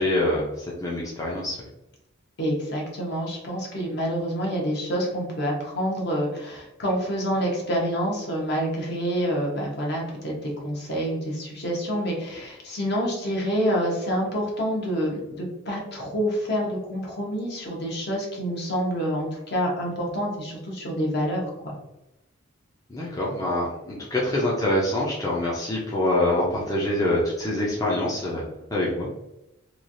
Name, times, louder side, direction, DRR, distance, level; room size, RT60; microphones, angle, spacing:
voice 1, 0.0-1.6 22.9-28.4 28.7-29.1, left 1 dB, 15° left, -5 dB, 0.5 m, -25 dB
voice 2, 2.4-21.7, equal, 50° left, -2 dB, 0.9 m, -27 dB
3.1 x 2.4 x 2.5 m, 0.89 s
head